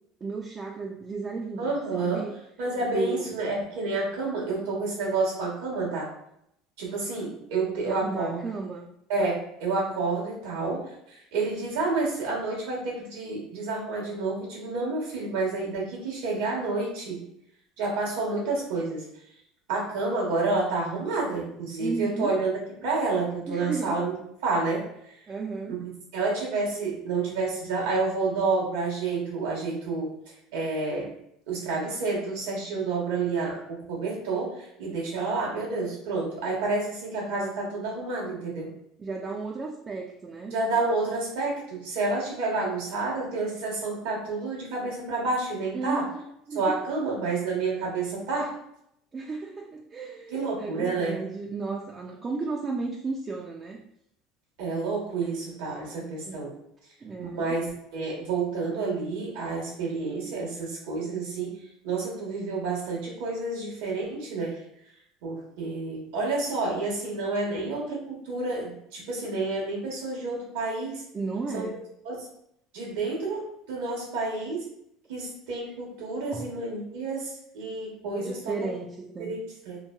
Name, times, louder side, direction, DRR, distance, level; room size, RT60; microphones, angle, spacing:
voice 1, 0.2-2.4 2.9-3.3 7.9-8.9 21.8-22.4 23.5-24.0 25.3-25.8 39.0-40.6 45.7-46.8 49.1-53.8 56.3-56.4 57.0-57.6 67.5-67.8 71.1-71.8 76.3-76.5 78.2-79.3, right 4 dB, 30° right, 1 dB, 0.4 m, -34 dB
voice 2, 1.6-2.3 2.6-6.1 6.8-8.4 9.1-17.2 17.8-19.1 19.7-24.1 24.4-24.9 25.7-30.1 30.5-31.1 31.5-38.7 40.5-46.0 46.5-48.6 50.3-51.2 54.6-56.5 57.2-64.6 65.2-71.0 71.5-71.7 72.0-72.3 72.7-74.7 75.1-78.7 79.2-79.8, right 3 dB, 80° right, -3 dB, 1.1 m, -29 dB
3.0 x 2.2 x 2.3 m, 0.75 s
supercardioid pair, 95°, 0 cm